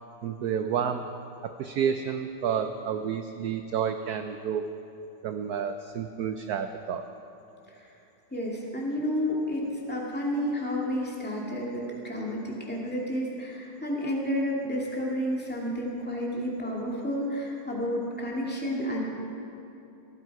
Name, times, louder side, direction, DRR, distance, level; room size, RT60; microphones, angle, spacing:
voice 1, 0.2-1.0 1.6-4.7 5.2-7.0, right 7 dB, 70° right, 8 dB, 0.9 m, -30 dB
voice 2, 8.3-19.0, equal, 5° left, -3 dB, 2.1 m, -31 dB
18.5 x 12.5 x 4.7 m, 2.8 s
omnidirectional pair, 2.1 m